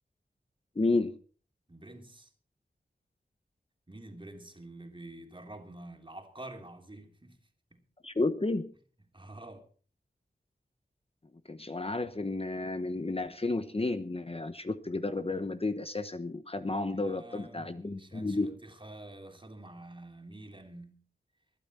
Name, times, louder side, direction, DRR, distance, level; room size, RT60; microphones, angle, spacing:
voice 1, 0.8-1.1 8.0-8.7 11.5-18.5, left 2 dB, 35° left, 1.0 m, -32 dB
voice 2, 1.7-2.3 3.9-7.4 7.7-7.8 9.1-9.7 16.9-21.0, right 1 dB, 30° right, 3.3 m, -48 dB
21.0 x 12.5 x 4.3 m
wide cardioid pair, 65°, 18 cm